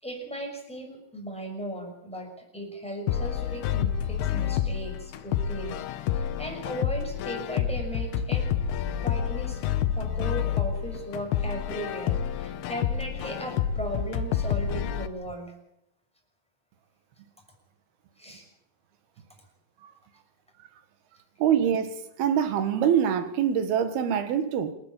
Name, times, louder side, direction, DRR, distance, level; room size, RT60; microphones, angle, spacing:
voice 1, 0.0-2.3 2.5-8.5 9.0-9.6 9.9-15.5 18.2-18.4, right 1 dB, ahead, 5.9 m, -37 dB
sound 1, 3.1-15.1, left 9 dB, 85° left, 3.1 m, -29 dB
voice 2, 21.4-24.7, right 8 dB, 75° right, 3.5 m, -24 dB
27.5 x 12.0 x 8.9 m
omnidirectional pair, 4.5 m